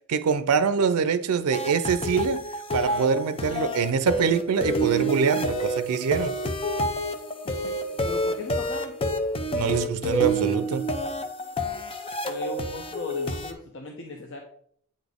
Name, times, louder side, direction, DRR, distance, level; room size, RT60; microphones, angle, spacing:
voice 1, 0.1-2.4 2.7-6.4 9.5-10.9, right 6 dB, 90° right, 0.5 m, -24 dB
sound 1, 1.5-13.5, equal, 25° left, 0.5 m, -28 dB
voice 2, 7.4-7.8 8.0-8.9 12.3-14.4, left 2 dB, 60° left, 0.8 m, -37 dB
8.5 x 4.0 x 3.6 m
head